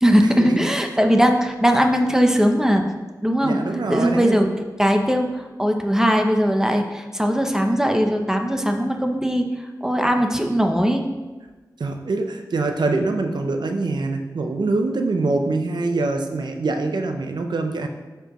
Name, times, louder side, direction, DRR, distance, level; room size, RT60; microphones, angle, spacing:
voice 1, 0.0-2.8 3.2-3.6 3.9-4.5 4.8-9.5 9.8-11.1, equal, 5° right, 3 dB, 0.8 m, -19 dB
voice 2, 3.4-4.5 11.8-17.9, right 3 dB, 80° right, 5 dB, 0.7 m, -24 dB
11.5 x 4.5 x 3.1 m, 1.2 s
wide cardioid pair, 70°, 7 cm